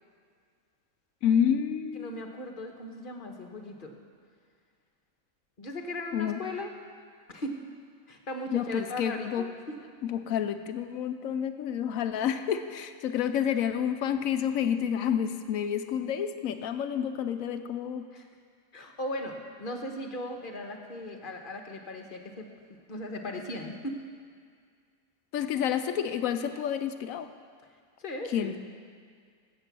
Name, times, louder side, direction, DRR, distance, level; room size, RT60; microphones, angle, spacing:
voice 1, 1.2-2.2 6.1-6.4 8.5-9.4 10.1-18.0 25.3-27.3 28.3-28.6, left 8 dB, 80° left, 9 dB, 1.0 m, -29 dB
voice 2, 1.9-3.9 5.6-6.7 7.3-7.6 8.1-9.8 18.1-18.3 18.7-24.0 28.0-28.6, left 1 dB, 40° left, 3 dB, 1.2 m, -38 dB
15.5 x 7.7 x 6.0 m, 2.1 s
omnidirectional pair, 1.4 m